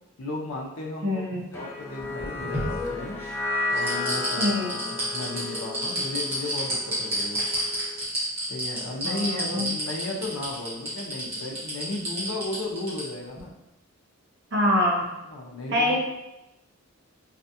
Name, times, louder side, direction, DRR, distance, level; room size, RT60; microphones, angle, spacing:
voice 1, 0.2-1.2 1.5-3.2 3.7-7.4 8.5-13.5 15.3-16.0, left 2 dB, 70° left, -1 dB, 0.6 m, -34 dB
voice 2, 1.0-1.4 4.4-4.7 9.0-9.7 14.5-15.1 15.7-16.0, left 1 dB, 50° right, -1 dB, 0.6 m, -25 dB
sound 1, 1.5-7.9, left 2 dB, 10° left, 0.3 m, -33 dB
sound 2, 2.0-3.3 3.7-13.0 13.4-13.5, right 1 dB, 30° right, 1.2 m, -30 dB
4.1 x 2.3 x 2.7 m, 0.95 s
head